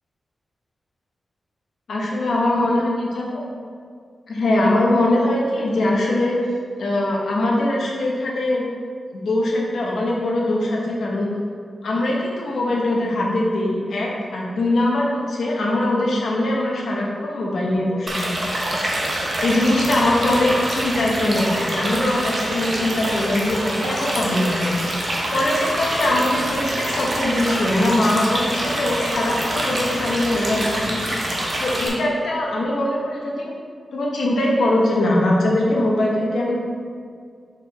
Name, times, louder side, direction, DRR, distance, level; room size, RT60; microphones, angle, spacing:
voice 1, 1.9-3.5 4.3-6.4 6.8-8.7 9.1-11.3 11.8-18.4 19.4-24.8 25.3-31.0 31.6-33.5 33.9-36.6, left 1 dB, 80° left, -3 dB, 1.1 m, -21 dB
sound 1, 18.1-31.9, right 1 dB, 40° right, 1.0 m, -25 dB
5.8 x 4.7 x 3.4 m, 2.1 s
wide cardioid pair, 140°, 0 cm